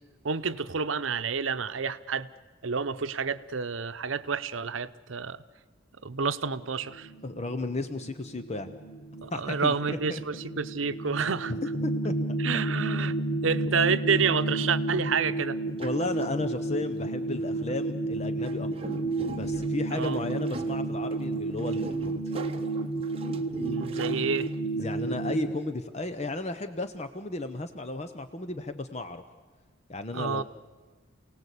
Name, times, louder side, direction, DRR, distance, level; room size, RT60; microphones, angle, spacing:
voice 1, 0.2-2.3 2.6-5.4 6.0-7.1 9.2-11.5 12.4-13.2 13.4-15.6 19.9-20.2 23.5-24.5 30.1-30.4, right 5 dB, 75° right, 13 dB, 0.8 m, -29 dB
sound 1, 6.6-25.6, right 2 dB, 65° left, 1.6 m, -32 dB
voice 2, 7.2-8.7 9.3-10.2 11.1-12.1 15.8-18.9 19.3-22.2 24.7-29.2 29.9-30.4, left 2 dB, 35° left, 9 dB, 0.8 m, -34 dB
sound 2, 15.8-16.3 17.6-17.8 18.4-24.8, right 2 dB, 30° right, 1.2 m, -41 dB
28.5 x 18.5 x 8.3 m, 1.4 s
head